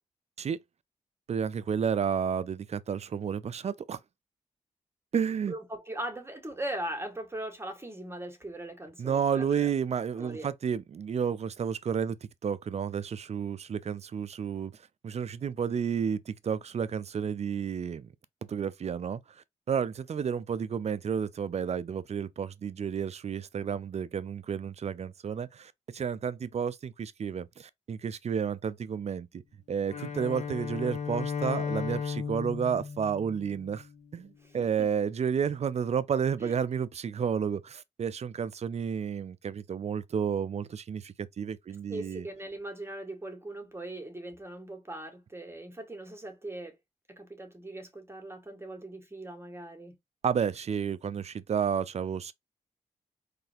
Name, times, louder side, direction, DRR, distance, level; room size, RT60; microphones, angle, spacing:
voice 1, 1.3-4.0 5.1-5.5 9.0-12.2 12.4-18.1 18.4-29.4 29.7-33.9 34.1-42.3 50.2-52.3, right 7 dB, 55° right, 0.5 m, -31 dB
voice 2, 5.5-9.7 10.2-10.5 34.4-34.9 36.4-36.5 41.9-46.8 47.1-50.0, right 1 dB, 20° right, 1.6 m, -40 dB
Bowed string instrument, 29.9-34.1, left 6 dB, 60° left, 1.1 m, -35 dB
3.8 x 3.2 x 2.8 m
supercardioid pair, 50°, 13 cm